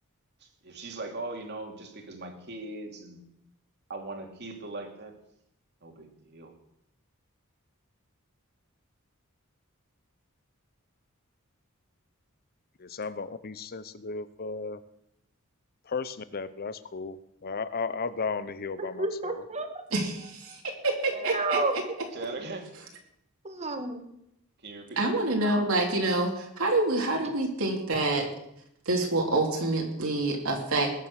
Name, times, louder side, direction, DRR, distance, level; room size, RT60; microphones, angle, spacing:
voice 1, 0.4-3.2 3.9-5.2 5.8-6.5 22.1-22.7 24.6-25.0, right 2 dB, 55° right, 3 dB, 2.6 m, -39 dB
voice 2, 12.8-14.8 15.9-19.4, left 4 dB, 45° left, 15 dB, 0.8 m, -35 dB
voice 3, 19.0-19.8 21.1-21.8 23.4-24.1, right 2 dB, 30° right, 7 dB, 1.6 m, -30 dB
voice 4, 19.9-20.6 20.8-21.6 25.0-28.3 28.9-30.9, right 2 dB, 75° right, 0 dB, 2.8 m, -27 dB
20.5 x 7.5 x 6.5 m, 0.78 s
head